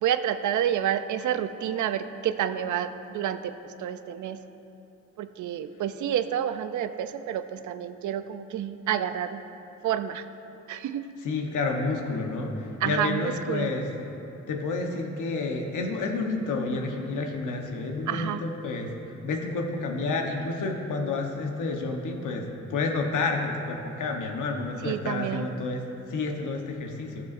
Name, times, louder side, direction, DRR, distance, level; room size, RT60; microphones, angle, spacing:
voice 1, 0.0-3.5 3.8-4.4 5.2-9.4 9.8-10.2 10.7-11.1 12.8-13.7 18.1-18.4 24.8-25.5, right 10 dB, 80° right, 10 dB, 0.5 m, -29 dB
voice 2, 11.2-13.9 14.5-27.3, left 3 dB, 90° left, 2 dB, 1.0 m, -30 dB
14.5 x 6.8 x 2.5 m, 2.9 s
cardioid pair, 100°, 30 cm